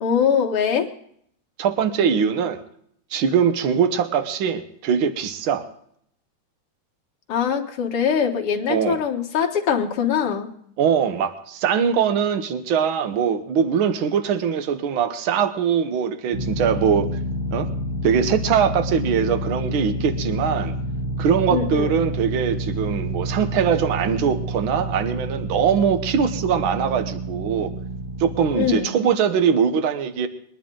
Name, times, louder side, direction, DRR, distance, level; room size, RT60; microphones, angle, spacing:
voice 1, 0.0-0.9 7.3-10.5 21.5-21.9 28.6-28.9, left 7 dB, 55° left, 1 dB, 1.8 m, -22 dB
voice 2, 1.6-2.6 3.1-5.7 8.7-9.0 10.8-17.1 17.5-17.7 18.0-20.7 21.2-27.7 28.2-30.3, right 7 dB, 80° right, 9 dB, 1.1 m, -22 dB
sound 1, 16.3-28.8, right 1 dB, 30° right, 0.7 m, -29 dB
22.0 x 11.0 x 3.7 m, 0.67 s
omnidirectional pair, 3.6 m